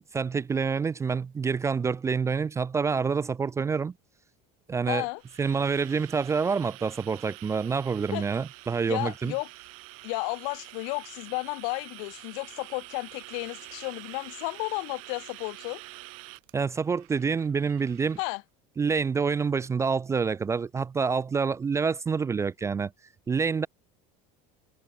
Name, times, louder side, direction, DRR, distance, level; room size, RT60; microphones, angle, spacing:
voice 1, 0.0-3.9 4.7-5.1 5.4-9.3 16.5-18.2 18.8-22.9 23.3-23.7, right 5 dB, 15° right, 0.3 m, -27 dB
voice 2, 4.9-5.2 8.1-8.2 8.9-9.5 10.0-15.8 18.2-18.4, left 40 dB or more, 80° left, 1.0 m, -33 dB
sound 1, 4.9-18.4, right 28 dB, 85° right, 3.9 m, -47 dB
cardioid pair, 130°, 17 cm